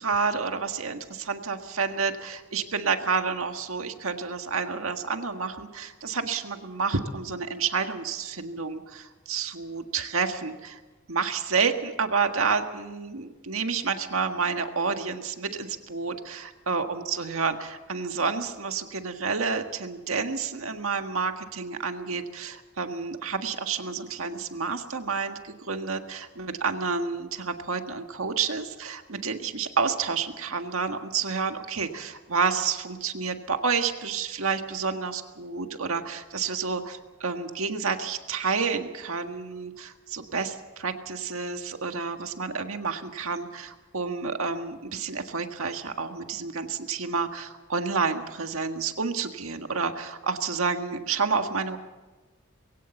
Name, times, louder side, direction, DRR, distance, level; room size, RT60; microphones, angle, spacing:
voice 1, 0.0-10.8 11.1-51.8, right 5 dB, 80° right, 6 dB, 1.7 m, -29 dB
22.0 x 17.0 x 7.2 m, 1.2 s
head